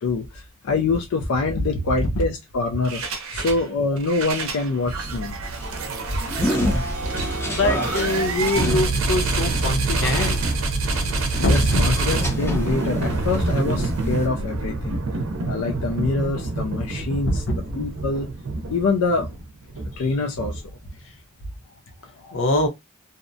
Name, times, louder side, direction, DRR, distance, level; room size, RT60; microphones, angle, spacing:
voice 1, 0.0-3.0 3.3-5.4 11.4-15.0 15.4-17.4 17.8-18.3 18.7-19.3 19.9-20.6 22.2-22.5, left 3 dB, 85° left, 0.4 m, -25 dB
sound 1, 2.8-3.6 4.0-20.9, right 3 dB, 75° right, 0.5 m, -26 dB
sound 2, 5.4-13.0 13.3-14.3, equal, 10° left, 0.5 m, -30 dB
voice 2, 7.3-10.4 11.4-11.8 22.3-22.7, left 2 dB, 60° left, 0.7 m, -23 dB
2.6 x 2.1 x 2.6 m
head